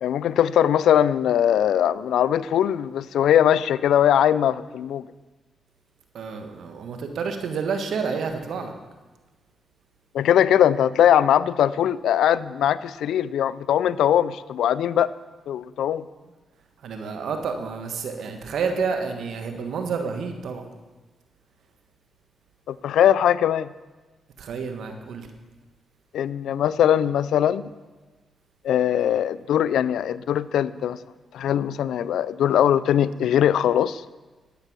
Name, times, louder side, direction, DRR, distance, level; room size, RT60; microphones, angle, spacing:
voice 1, 0.0-5.0 10.1-15.1 15.5-16.0 22.7-23.7 26.1-27.6 28.6-31.0 31.3-34.0, left 10 dB, 85° left, 18 dB, 0.3 m, -21 dB
voice 2, 6.1-8.7 16.8-20.6 24.4-25.3, right 5 dB, 80° right, 6 dB, 1.4 m, -29 dB
11.5 x 9.0 x 6.1 m, 1.2 s
cardioid pair, 65°, 0 cm